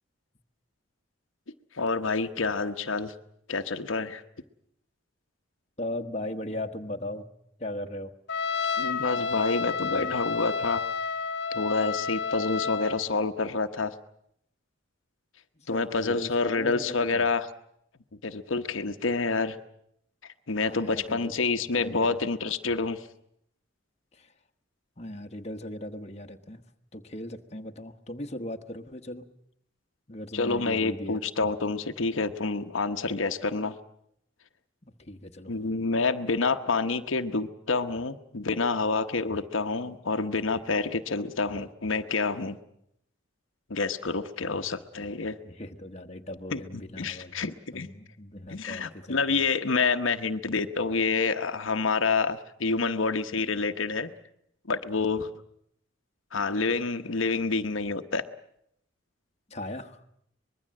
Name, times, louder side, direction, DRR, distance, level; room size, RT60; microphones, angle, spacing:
voice 1, 1.7-3.1 3.5-4.2 8.8-10.8 11.5-13.9 15.7-17.5 18.2-19.6 20.2-23.1 30.3-33.8 35.5-42.6 43.7-45.4 46.5-47.9 48.5-54.1 54.7-55.3 56.3-58.2, left 4 dB, 80° left, 7 dB, 1.0 m, -28 dB
voice 2, 5.8-7.3 7.6-8.1 15.6-17.3 20.6-21.5 21.8-22.2 24.1-24.3 25.0-26.6 26.9-29.3 30.1-31.2 34.8-35.5 44.4-44.6 45.4-49.4 59.5-60.0, left 1 dB, 35° left, 4 dB, 1.2 m, -38 dB
Trumpet, 8.3-13.0, left 5 dB, 55° left, 1.3 m, -30 dB
24.5 x 21.0 x 7.6 m, 0.73 s
head